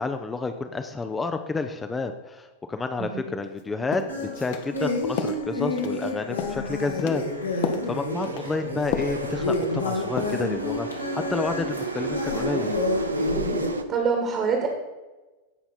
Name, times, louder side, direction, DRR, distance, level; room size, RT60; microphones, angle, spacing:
voice 1, 0.0-7.2 7.6-12.7, left 3 dB, 15° left, 7 dB, 0.7 m, -30 dB
sound 1, 3.4-3.6 3.9-4.1 4.5-4.7 5.2-5.4 5.8-6.1 6.4-6.6 7.0-7.2 7.6-7.9 8.2-8.5 8.9-9.2 9.5-9.9 10.2-10.4, left 8 dB, 50° left, 1.0 m, -31 dB
sound 2, 4.1-13.7, left 2 dB, 80° left, 2.0 m, -30 dB
sound 3, 7.2-13.8, right 3 dB, 75° right, 0.8 m, -33 dB
voice 2, 13.9-14.7, right 5 dB, 30° right, 3 dB, 1.8 m, -25 dB
16.5 x 5.7 x 4.2 m, 1.2 s
figure-of-eight pair, 90°, 0 cm